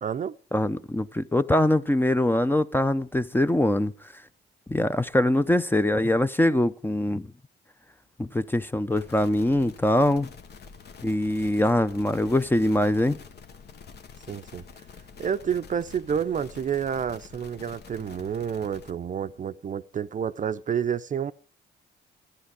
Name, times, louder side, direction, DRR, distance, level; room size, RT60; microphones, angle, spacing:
voice 1, 0.0-0.3 14.3-14.6 15.2-21.3, right 8 dB, 40° right, 0.6 m, -29 dB
voice 2, 0.5-3.9 4.7-7.3 8.2-10.3 11.0-13.2, left 1 dB, 10° left, 0.6 m, -23 dB
sound 1, 8.9-18.9, left 6 dB, 55° left, 1.2 m, -47 dB
13.0 x 10.5 x 4.8 m
cardioid pair, 90°, 20 cm